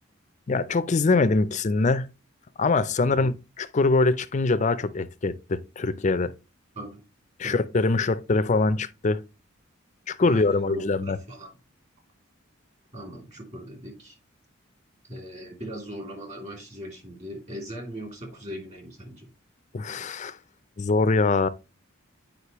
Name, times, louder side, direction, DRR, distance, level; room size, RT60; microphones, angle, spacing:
voice 1, 0.5-2.1 2.6-6.3 7.4-9.2 10.1-11.2 19.7-20.4 20.8-21.5, left 3 dB, 35° left, 0.5 m, -23 dB
voice 2, 10.2-11.5 12.9-14.2 15.0-19.3, equal, 35° right, 2.8 m, -39 dB
8.2 x 5.1 x 3.0 m
head